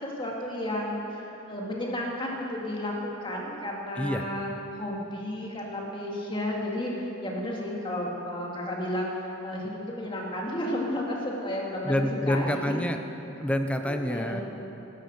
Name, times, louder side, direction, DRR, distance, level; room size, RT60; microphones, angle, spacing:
voice 1, 0.0-9.1 9.4-12.9 13.8-14.4, left 1 dB, 25° left, -2 dB, 2.0 m, -32 dB
voice 2, 11.8-13.0 13.3-14.4, left 1 dB, 5° left, 6 dB, 0.6 m, -27 dB
12.5 x 10.5 x 6.5 m, 3.0 s
head